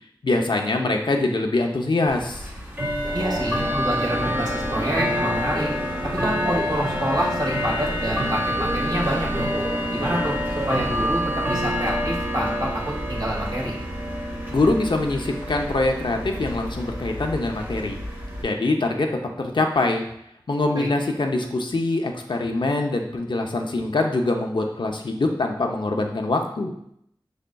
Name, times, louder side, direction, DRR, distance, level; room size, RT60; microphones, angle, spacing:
voice 1, 0.2-2.5 14.5-18.0 18.4-19.1 19.4-20.1 20.5-26.7, left 2 dB, 65° left, 2 dB, 0.6 m, -24 dB
Bell / Tick-tock, 2.1-18.4, equal, 20° right, 1.0 m, -28 dB
sound 1, 3.0-11.1, right 1 dB, 85° right, 1.1 m, -34 dB
voice 2, 3.1-5.7 6.0-9.5 9.9-11.2 11.5-13.7 20.7-20.9, right 1 dB, 55° right, -3 dB, 1.5 m, -27 dB
6.4 x 3.5 x 2.2 m, 0.73 s
wide cardioid pair, 50°, 8 cm